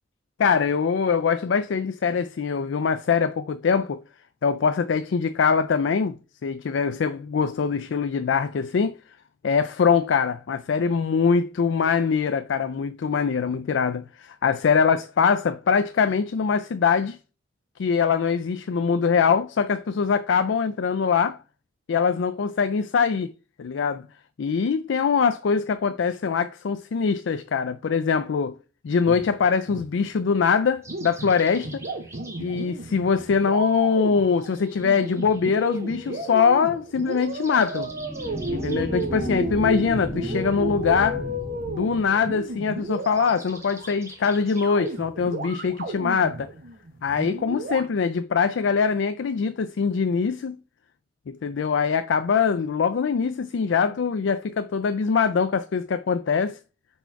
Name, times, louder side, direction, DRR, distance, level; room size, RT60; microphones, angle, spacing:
voice 1, 0.4-4.0 4.4-6.2 6.4-9.0 9.4-17.2 17.8-21.4 21.9-23.3 23.6-24.1 24.4-28.6 28.8-31.9 32.4-37.9 38.5-41.2 41.7-46.5 47.0-50.6 51.3-56.6, left 6 dB, 70° left, 0.4 m, -23 dB
sound 1, 29.0-30.4 30.7-43.9 44.6-47.9, right 2 dB, 50° right, 0.9 m, -34 dB
sound 2, 30.8-32.7 34.3-36.3 36.9-39.1 42.8-45.0, right 2 dB, 15° right, 1.3 m, -47 dB
sound 3, 37.7-42.7, left 1 dB, 20° left, 1.8 m, -33 dB
4.5 x 4.3 x 5.7 m
head